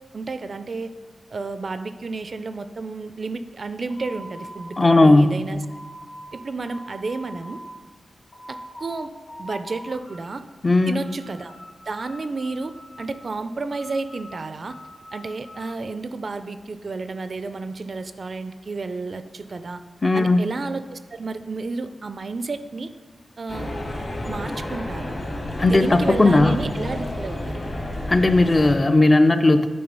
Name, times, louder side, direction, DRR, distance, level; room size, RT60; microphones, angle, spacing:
voice 1, 0.1-0.9 1.3-5.6 6.3-7.6 8.5-9.1 9.4-10.4 10.9-11.5 11.9-14.8 15.1-19.8 20.1-22.9 23.4-23.7 24.3-25.1 25.6-27.6, right 3 dB, 45° right, 11 dB, 0.3 m, -31 dB
sound 1, 3.9-6.3 6.6-7.7 8.1-9.0 9.3-10.4 10.7-11.7 12.0-13.2 13.7-15.8, equal, 90° left, 2.1 m, -42 dB
voice 2, 4.8-5.4 10.6-11.0 20.0-20.4 25.6-26.6 28.1-29.7, left 2 dB, 25° left, 8 dB, 0.4 m, -16 dB
sound 2, 23.5-28.8, left 1 dB, 50° left, 1.7 m, -31 dB
8.7 x 3.5 x 5.4 m, 1.3 s
wide cardioid pair, 140°, 0 cm